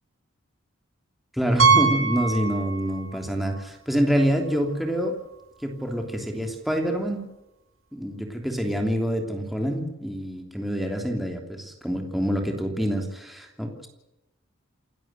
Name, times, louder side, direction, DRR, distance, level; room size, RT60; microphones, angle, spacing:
voice 1, 1.3-5.2 5.6-7.2 7.9-13.9, equal, ahead, 3 dB, 3.2 m, -26 dB
Piano, 1.6-3.2 3.5-3.6 4.2-4.3 4.6-4.7 6.7-6.8, right 5 dB, 75° right, 3.4 m, -22 dB
28.5 x 12.5 x 8.1 m, 0.94 s
head